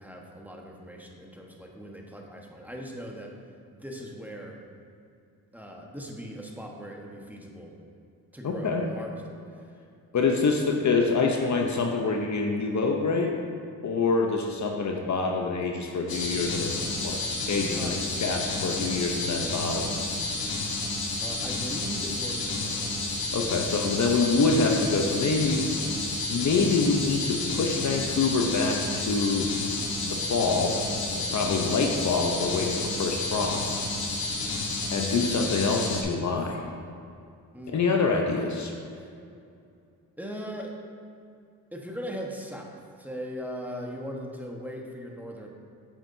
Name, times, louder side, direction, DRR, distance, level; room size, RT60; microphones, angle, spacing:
voice 1, 0.0-3.3 3.7-4.6 5.5-7.7 8.3-9.6 10.2-10.3 17.7-18.0 21.2-23.0 37.5-37.8 38.9-39.1 40.2-40.7 41.7-42.7 43.0-45.5, equal, 5° right, 0 dB, 1.2 m, -39 dB
voice 2, 8.4-8.9 10.1-13.3 13.8-17.2 17.5-19.9 23.3-25.7 26.3-29.5 30.0-30.8 31.1-33.7 34.9-36.6 37.7-38.7, left 4 dB, 50° left, 2 dB, 0.8 m, -26 dB
sound 1, 16.1-36.0, left 3 dB, 70° left, 1.3 m, -31 dB
8.8 x 7.3 x 2.7 m, 2.4 s
supercardioid pair, 55°, 37 cm